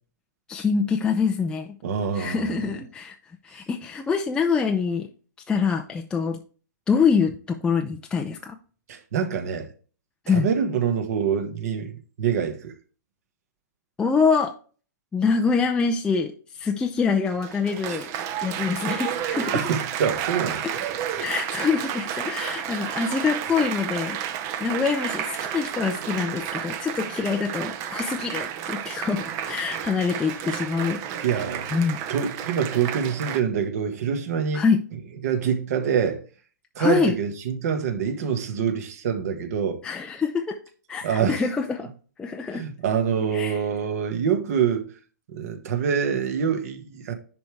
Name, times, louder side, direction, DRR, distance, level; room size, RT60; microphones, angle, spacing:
voice 1, 0.5-1.8 2.1-3.1 3.4-5.1 5.5-6.4 6.9-8.6 10.3-10.5 14.0-14.5 15.1-18.1 18.4-19.6 20.6-20.7 21.2-24.2 24.6-31.3 31.7-32.0 34.5-34.8 36.8-37.2 39.8-40.6 40.9-41.9 42.2-42.6 43.3-43.6, left 5 dB, 10° left, 0.5 m, -25 dB
voice 2, 1.8-2.7 8.9-9.7 10.3-12.7 17.9-18.0 18.4-18.7 19.5-20.6 31.2-31.7 32.1-34.6 35.2-36.2 36.7-39.8 41.0-41.4 42.5-44.9 45.3-47.1, right 7 dB, 50° right, 1.5 m, -25 dB
Applause, 17.2-33.4, right 9 dB, 30° right, 0.7 m, -31 dB
10.5 x 3.5 x 3.3 m
hypercardioid pair, 135°, 10 cm